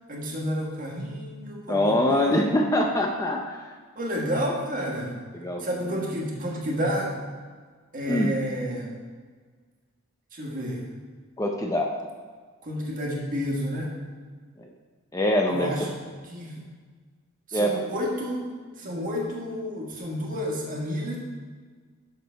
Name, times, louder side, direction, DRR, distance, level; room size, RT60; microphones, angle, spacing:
voice 1, 0.1-2.4 3.9-5.2 5.6-7.2 7.9-9.0 10.3-10.9 12.6-13.9 15.5-15.9 16.2-16.6 17.5-18.5 18.8-21.2, equal, 40° right, -2 dB, 1.5 m, -30 dB
voice 2, 1.7-3.7 5.3-6.0 8.1-8.3 11.4-11.9 14.6-14.7 15.1-15.9 17.5-17.8, left 1 dB, 15° left, 1 dB, 0.4 m, -24 dB
6.6 x 6.5 x 4.5 m, 1.5 s
head